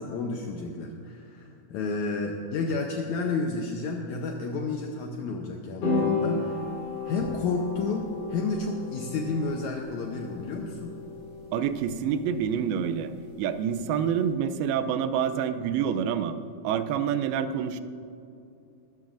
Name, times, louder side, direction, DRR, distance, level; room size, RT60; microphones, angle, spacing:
voice 1, 0.0-6.6 7.1-11.0, left 3 dB, 75° left, 1 dB, 1.7 m, -31 dB
sound 1, 5.8-14.2, left 3 dB, 60° left, 5.0 m, -34 dB
voice 2, 11.5-13.1 13.4-16.4 16.6-17.8, right 8 dB, 85° right, 11 dB, 2.5 m, -27 dB
20.5 x 14.0 x 2.6 m, 2.6 s
omnidirectional pair, 4.3 m